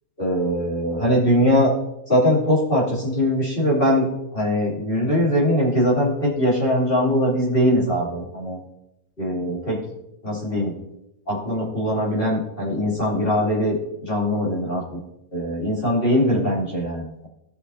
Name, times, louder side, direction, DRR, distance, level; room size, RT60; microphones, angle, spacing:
voice 1, 0.2-1.7 2.1-4.1 4.3-8.6 9.2-9.8 10.2-10.7 11.3-13.8 14.0-14.8 15.3-17.3, equal, 40° left, -6 dB, 3.3 m, -21 dB
16.5 x 6.2 x 2.8 m, 0.86 s
omnidirectional pair, 1.4 m